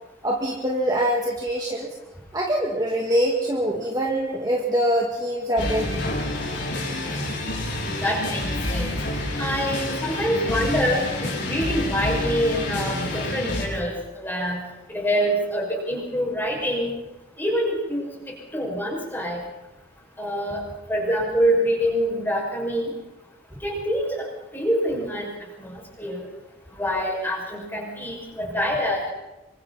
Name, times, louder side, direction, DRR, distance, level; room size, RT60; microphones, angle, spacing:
voice 1, 0.2-1.9 2.3-5.9, equal, 20° right, -1 dB, 2.2 m, -24 dB
sound 1, 5.6-13.7, left 1 dB, 60° left, 5.9 m, -28 dB
voice 2, 7.8-9.0 9.4-14.6 14.9-17.0 17.4-18.1 18.5-19.4 20.2-20.6 20.9-22.9 23.6-24.2 24.5-25.3 25.6-26.2 26.7-29.1, equal, 10° left, -2 dB, 6.1 m, -25 dB
27.0 x 24.5 x 4.2 m, 1.0 s
head